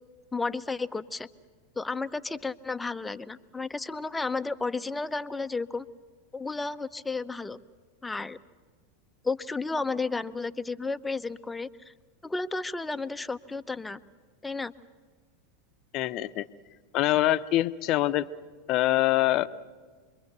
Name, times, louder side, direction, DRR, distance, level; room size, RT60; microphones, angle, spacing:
voice 1, 0.3-1.3 1.8-5.9 6.3-7.6 8.0-8.4 9.2-11.9 12.2-14.0 14.4-14.7, left 3 dB, 10° left, 13 dB, 0.8 m, -32 dB
voice 2, 15.9-16.5 16.9-18.3 18.7-19.5, left 15 dB, 45° left, 14 dB, 0.8 m, -24 dB
27.0 x 22.5 x 6.8 m, 1.5 s
hypercardioid pair, 90°, 0 cm